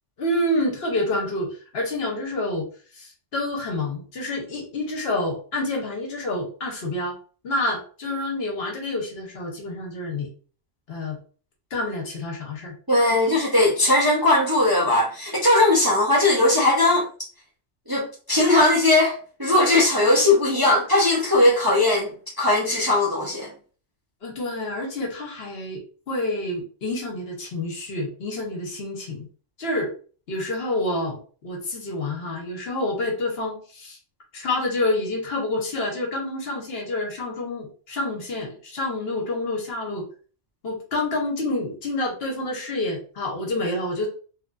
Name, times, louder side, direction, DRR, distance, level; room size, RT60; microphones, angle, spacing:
voice 1, 0.2-2.7 2.9-7.2 7.4-10.3 10.9-11.2 11.7-12.7 13.1-13.4 24.2-29.3 29.6-29.9 30.3-34.0 34.3-40.0 40.6-44.1, left 2 dB, 60° left, 1.0 m, -28 dB
voice 2, 12.9-17.0 17.9-22.1 22.4-23.5, left 2 dB, 25° right, 0.5 m, -19 dB
3.0 x 2.5 x 2.2 m
omnidirectional pair, 1.2 m